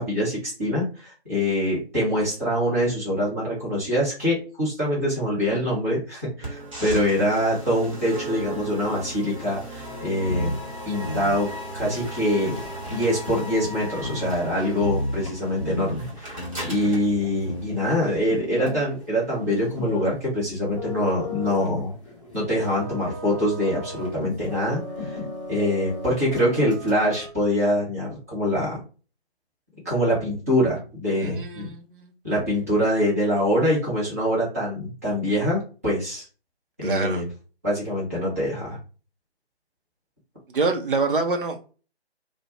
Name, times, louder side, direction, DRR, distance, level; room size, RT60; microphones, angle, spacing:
voice 1, 0.0-10.5 10.8-12.6 12.9-21.9 22.3-25.2 25.5-28.8 29.8-31.7 32.2-36.2 36.8-37.3 37.6-38.8, equal, 15° right, -8 dB, 0.7 m, -24 dB
sound 1, 6.4-18.4, right 1 dB, 30° right, 1.0 m, -37 dB
sound 2, 10.3-10.7 11.0-11.5 11.8-12.1 12.6-12.7 12.9-15.3 15.6-16.1 16.4-16.8 17.1-17.6, left 1 dB, 40° left, 0.4 m, -31 dB
sound 3, 12.5-27.3, left 3 dB, 15° left, 1.0 m, -39 dB
voice 2, 31.1-32.1 36.8-37.2 40.5-41.7, right 3 dB, 55° right, 4 dB, 0.6 m, -26 dB
2.3 x 2.1 x 2.9 m, 0.36 s
figure-of-eight pair, 155°, 32 cm